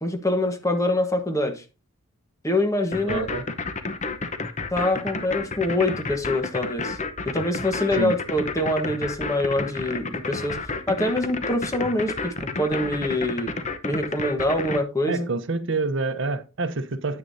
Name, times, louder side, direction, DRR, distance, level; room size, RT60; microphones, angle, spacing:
voice 1, 0.0-1.6 2.4-3.3 4.7-7.0 7.2-10.6 10.9-13.5 13.8-15.3, left 1 dB, 15° left, 1.2 m, -25 dB
sound 1, 2.9-14.8, left 3 dB, 35° left, 0.8 m, -30 dB
voice 2, 3.1-3.4 7.9-8.1 15.1-17.2, right 3 dB, 60° right, 0.8 m, -27 dB
9.5 x 9.0 x 2.7 m
head